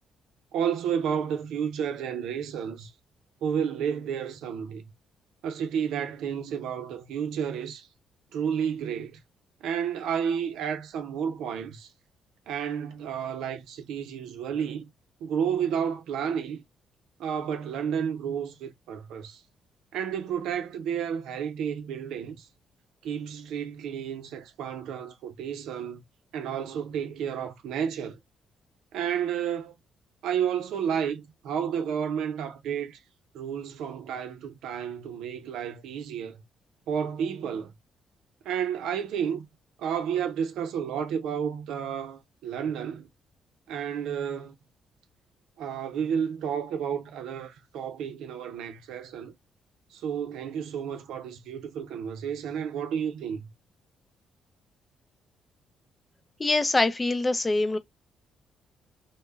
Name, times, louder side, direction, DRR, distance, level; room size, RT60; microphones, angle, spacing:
voice 1, 0.5-2.9 3.4-4.8 5.4-7.9 8.3-9.2 9.6-11.9 12.5-14.9 15.2-16.6 17.2-19.4 19.9-22.5 23.0-26.0 26.3-28.2 28.9-29.7 30.2-33.0 33.3-36.4 36.9-37.7 38.4-39.5 39.8-43.1 43.7-44.5 45.6-49.3 49.9-53.5, right 8 dB, 85° right, 0.5 m, -31 dB
voice 2, 56.4-57.8, left 2 dB, 20° left, 0.4 m, -24 dB
2.1 x 2.0 x 3.3 m
cardioid pair, 90°, 0 cm